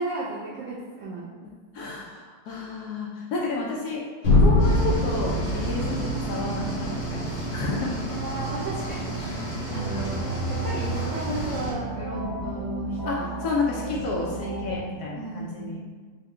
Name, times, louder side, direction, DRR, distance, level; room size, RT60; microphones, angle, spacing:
voice 1, 0.0-1.3 5.8-6.1 8.1-9.2 9.7-13.3 15.1-15.8, right 2 dB, 85° right, -6 dB, 0.7 m, -34 dB
voice 2, 1.7-7.9 8.4-8.5 13.0-15.8, left 3 dB, 70° left, -3 dB, 0.9 m, -31 dB
sound 1, 4.2-8.2, left 2 dB, 90° left, 1.7 m, -23 dB
sound 2, 4.6-11.7, right 2 dB, 35° left, 0.5 m, -32 dB
sound 3, 9.7-14.8, right 2 dB, 60° right, 1.5 m, -33 dB
4.7 x 2.1 x 3.6 m, 1.5 s
omnidirectional pair, 2.1 m